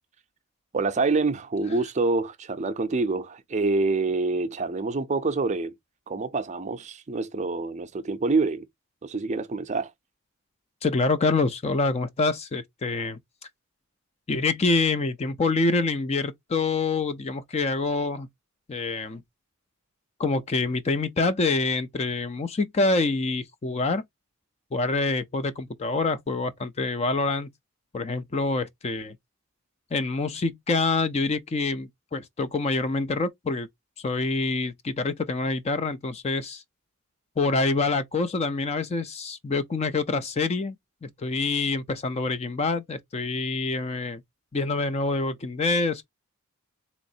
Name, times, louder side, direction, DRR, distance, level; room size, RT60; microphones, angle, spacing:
voice 1, 0.7-5.7 6.1-8.7 9.0-9.9, right 3 dB, 30° right, 0.5 m, -26 dB
voice 2, 10.8-13.2 14.3-18.3 18.7-19.2 20.2-24.0 24.7-27.5 27.9-29.2 29.9-33.7 34.0-36.6 37.4-40.8 41.0-44.2 44.5-46.0, left 3 dB, 30° left, 0.4 m, -26 dB
4.0 x 3.0 x 2.6 m
head